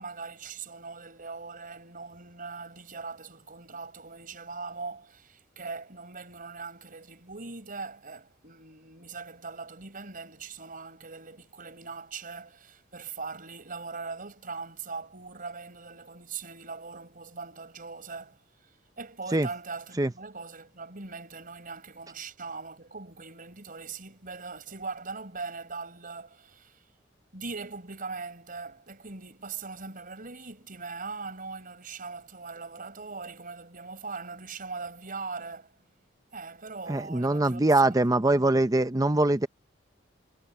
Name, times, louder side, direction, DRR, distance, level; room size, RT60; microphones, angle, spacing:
voice 1, 0.0-18.4 19.0-26.8 27.3-35.7 36.3-37.9 38.2-38.6, right 4 dB, 45° right, 5.2 m, -41 dB
voice 2, 36.9-39.5, right 2 dB, 20° right, 0.7 m, -23 dB
head